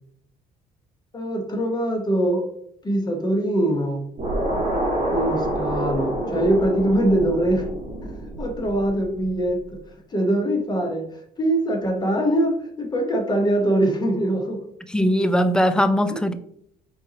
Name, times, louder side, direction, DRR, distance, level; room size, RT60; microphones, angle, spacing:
voice 1, 1.1-2.5 2.8-4.0 5.1-7.7 8.0-9.6 10.1-14.6, right 1 dB, 25° left, 3 dB, 1.0 m, -23 dB
sound 1, 4.2-9.5, right 1 dB, 40° right, 1.6 m, -27 dB
voice 2, 14.9-16.3, equal, 5° left, 10 dB, 0.4 m, -20 dB
4.4 x 3.7 x 2.9 m, 0.70 s
cardioid pair, 110°, 17 cm